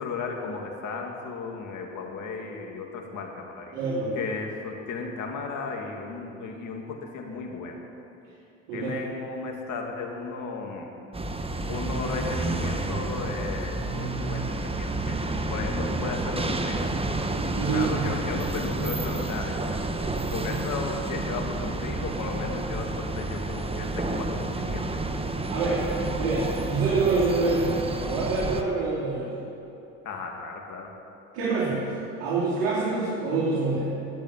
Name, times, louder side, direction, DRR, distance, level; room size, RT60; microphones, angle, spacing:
voice 1, 0.0-3.7 4.1-7.8 8.7-10.9 11.7-15.2 15.5-16.9 17.7-19.9 20.3-24.9 30.0-30.9, left 4 dB, 55° left, 1 dB, 2.5 m, -35 dB
voice 2, 3.7-4.2 8.7-8.9 17.5-18.0 25.5-25.9 26.2-29.4 31.3-31.9 32.2-33.9, right 3 dB, 70° right, -6 dB, 3.1 m, -26 dB
sound 1, 11.1-28.6, right 2 dB, 15° right, 1.1 m, -30 dB
12.0 x 8.3 x 9.8 m, 2.9 s
hypercardioid pair, 75°, 37 cm